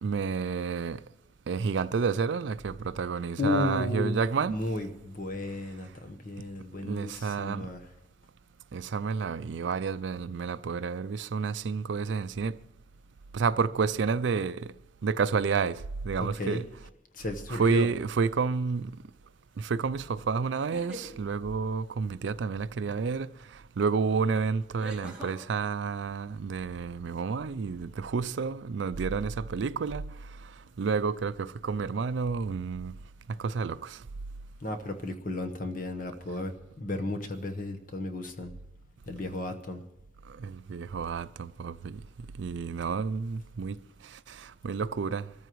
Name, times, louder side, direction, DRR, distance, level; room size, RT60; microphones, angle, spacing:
voice 1, 0.0-1.0 1.5-4.6 6.8-7.7 8.7-12.5 13.3-14.7 15.0-16.7 17.5-19.0 19.6-23.3 23.8-30.1 30.8-32.9 33.4-34.0 40.4-42.0 42.4-43.8 44.3-45.3, right 5 dB, 70° right, 0.4 m, -30 dB
voice 2, 3.4-4.2 4.5-7.8 16.2-16.6 17.1-17.9 34.6-36.5 36.8-38.5 39.1-39.8, left 2 dB, 45° left, 1.1 m, -33 dB
sound 1, 17.9-18.4 20.5-21.1 23.4-23.5 24.8-25.4, right 1 dB, 5° right, 2.7 m, -43 dB
24.0 x 14.0 x 3.1 m
head